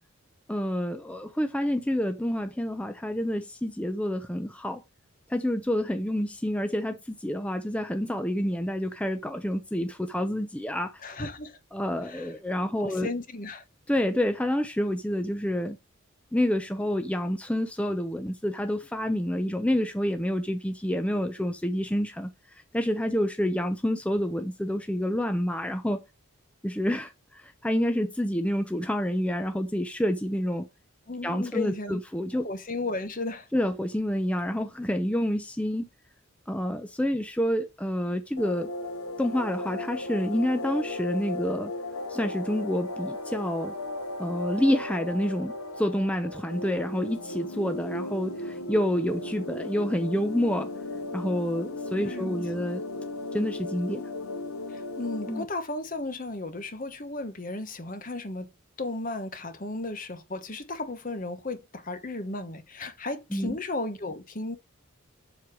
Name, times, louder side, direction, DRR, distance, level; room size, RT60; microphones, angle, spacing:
voice 1, 0.5-4.8 5.3-11.0 11.7-13.1 13.9-15.8 16.3-26.0 26.6-30.7 31.2-32.5 33.5-35.9 36.5-38.7 39.2-41.7 42.1-43.7 44.2-50.7 51.1-52.8 53.3-54.1 55.3-55.5 63.3-63.6, equal, 5° left, 0.6 m, -28 dB
voice 2, 11.0-11.6 12.0-12.3 12.8-13.6 31.1-32.0 32.4-33.5 52.0-52.4 54.7-58.5 58.8-64.6, left 2 dB, 40° left, 1.2 m, -35 dB
sound 1, 38.4-55.4, left 2 dB, 85° left, 1.3 m, -36 dB
7.6 x 6.7 x 4.8 m
head